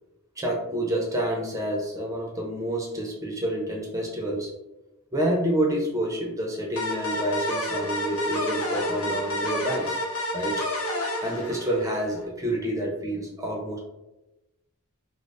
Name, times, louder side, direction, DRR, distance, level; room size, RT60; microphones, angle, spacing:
voice 1, 0.4-4.5 5.1-10.0 10.3-10.7 10.9-13.8, right 1 dB, 15° right, -1 dB, 0.6 m, -28 dB
sound 1, 6.8-12.2, left 1 dB, 70° left, 0.8 m, -30 dB
5.0 x 2.0 x 2.5 m, 0.97 s
head